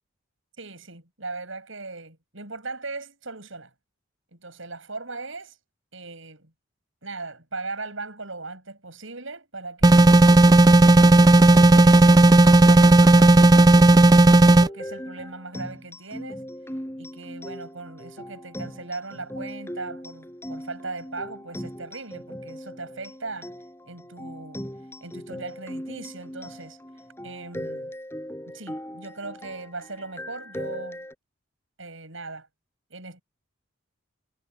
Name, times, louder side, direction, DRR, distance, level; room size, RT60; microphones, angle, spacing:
voice 1, 0.6-3.7 4.3-5.6 5.9-6.5 7.0-10.1 10.6-13.7 14.3-16.5 17.0-23.5 23.9-24.6 25.0-26.8 27.2-27.9 28.5-31.0 31.8-32.5 32.9-33.2, right 3 dB, 70° right, 6.6 m, -38 dB
sound 1, 9.8-14.7, right 2 dB, 20° right, 0.4 m, -13 dB
sound 2, 14.6-31.1, equal, 10° left, 5.8 m, -39 dB
head